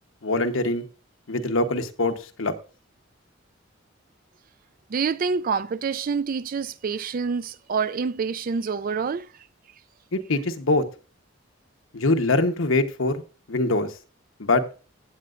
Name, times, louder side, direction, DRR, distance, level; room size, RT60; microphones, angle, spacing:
voice 1, 0.2-0.8 1.3-2.5 10.1-10.8 11.9-13.2 13.5-13.9 14.4-14.6, left 2 dB, 80° left, 1.1 m, -23 dB
voice 2, 4.9-9.3, right 5 dB, 45° right, 0.4 m, -27 dB
15.5 x 8.8 x 2.5 m
head